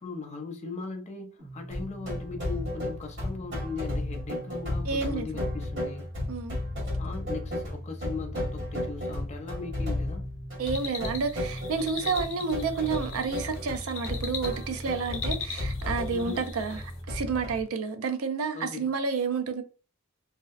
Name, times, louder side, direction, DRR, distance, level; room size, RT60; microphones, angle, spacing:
voice 1, 0.0-6.1 7.0-10.3 16.1-16.4 18.5-19.0, left 4 dB, 35° left, 0.5 m, -39 dB
sound 1, 1.4-17.4, right 1 dB, 45° right, 1.0 m, -43 dB
sound 2, 1.7-17.6, left 1 dB, 60° right, 1.3 m, -34 dB
voice 2, 4.8-5.3 6.3-6.6 10.6-19.6, right 5 dB, 90° right, 0.4 m, -30 dB
sound 3, 10.7-17.0, left 5 dB, 65° left, 0.7 m, -40 dB
2.7 x 2.0 x 2.3 m
head